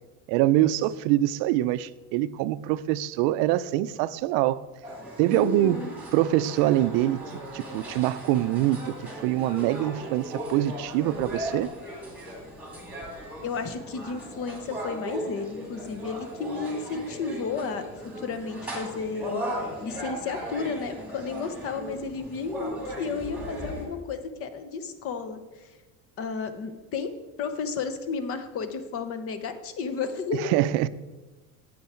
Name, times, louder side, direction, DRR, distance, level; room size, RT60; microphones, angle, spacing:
voice 1, 0.3-4.6 5.2-5.8 6.1-7.2 7.5-11.7 30.3-30.9, right 14 dB, 90° right, 0.5 m, -24 dB
sound 1, 4.8-23.8, equal, 5° right, 2.3 m, -38 dB
voice 2, 5.3-6.0 13.4-17.9 18.2-19.4 19.8-25.7 26.2-27.1 27.4-30.4, left 5 dB, 35° left, 0.8 m, -32 dB
9.2 x 8.7 x 4.4 m
cardioid pair, 170°, 37 cm